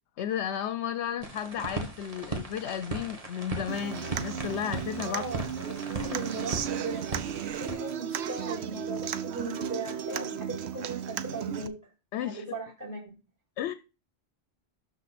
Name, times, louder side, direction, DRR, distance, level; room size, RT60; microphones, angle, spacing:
voice 1, 0.2-5.2 12.1-12.4 13.6-13.7, left 9 dB, 80° left, 0.9 m, -33 dB
sound 1, 1.2-7.8, right 3 dB, 35° right, 1.6 m, -38 dB
Human voice / Acoustic guitar, 3.7-11.7, right 9 dB, 75° right, 0.9 m, -35 dB
voice 2, 5.0-7.0 7.6-11.7 12.2-13.1, right 3 dB, 15° right, 5.4 m, -37 dB
12.5 x 4.4 x 4.1 m
omnidirectional pair, 1.1 m